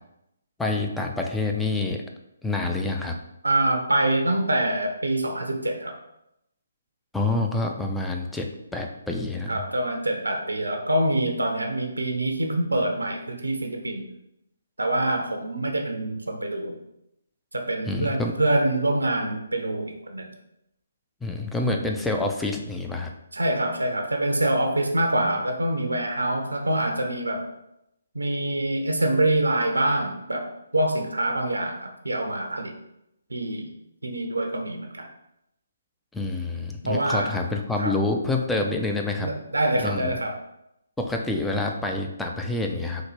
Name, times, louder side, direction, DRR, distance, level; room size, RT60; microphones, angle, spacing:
voice 1, 0.6-2.0 2.4-3.2 7.1-9.6 17.9-18.3 21.2-23.1 36.1-39.3 39.8-40.1 41.0-43.0, left 2 dB, 5° left, 2 dB, 0.3 m, -27 dB
voice 2, 3.4-6.0 9.5-14.1 14.8-16.8 17.5-20.3 23.3-27.5 28.1-32.8 33.3-33.7 34.0-35.1 36.8-37.4 37.8-38.0 39.2-40.4, right 1 dB, 85° right, 3 dB, 0.5 m, -25 dB
3.9 x 2.1 x 3.2 m, 0.83 s
figure-of-eight pair, 140°, 0 cm